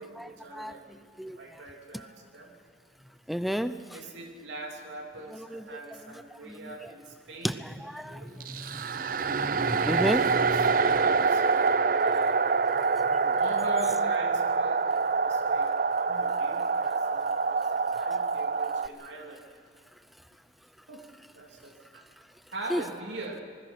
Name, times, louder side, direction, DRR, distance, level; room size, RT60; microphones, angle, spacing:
voice 1, 0.0-2.5 3.9-8.4 10.1-12.4 13.3-19.4 20.9-21.1 21.4-22.1 22.5-23.4, right 2 dB, 80° right, 1 dB, 3.1 m, -42 dB
voice 2, 3.3-3.7 5.5-5.6 7.4-7.5 7.9-8.2 8.6-8.8 9.3-10.2 22.7-22.8, equal, ahead, 11 dB, 0.5 m, -30 dB
sound 1, 8.4-18.9, right 4 dB, 50° right, 0.4 m, -26 dB
26.5 x 20.5 x 5.9 m, 2.1 s
head